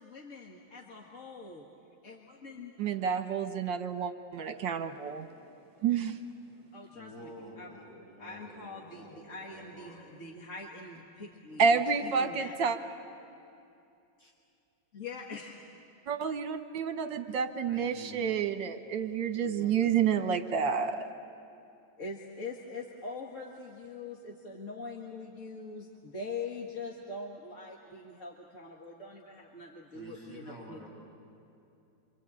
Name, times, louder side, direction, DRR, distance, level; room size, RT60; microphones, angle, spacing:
voice 1, 0.0-1.7 2.0-2.7 6.7-7.3 7.6-7.7 8.2-12.6 14.9-15.6 19.4-20.1 22.0-30.9, left 3 dB, 40° left, -1 dB, 2.0 m, -43 dB
voice 2, 2.8-5.3 5.8-6.2 11.6-12.8 16.1-21.1, right 6 dB, 70° right, 7 dB, 1.8 m, -29 dB
voice 3, 6.9-10.1 14.2-14.3 17.7-18.2 29.9-30.9, equal, 60° left, -4 dB, 7.4 m, -49 dB
27.5 x 25.5 x 8.6 m, 2.7 s
omnidirectional pair, 2.1 m